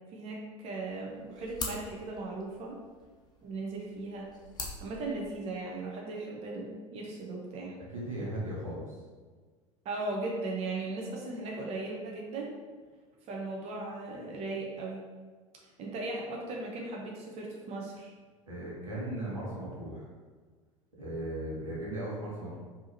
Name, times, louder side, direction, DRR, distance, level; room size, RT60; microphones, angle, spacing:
voice 1, 0.1-2.8 3.4-4.3 4.8-7.8 9.8-12.5 13.2-15.0 15.8-18.1, right 2 dB, 40° right, -2 dB, 0.8 m, -37 dB
sound 1, 0.8-5.8, left 3 dB, 25° left, 0.7 m, -44 dB
voice 2, 7.9-9.0 18.5-20.1 21.0-22.6, right 1 dB, 85° right, -6 dB, 1.2 m, -37 dB
4.7 x 2.9 x 2.6 m, 1.5 s
figure-of-eight pair, 75°, 17 cm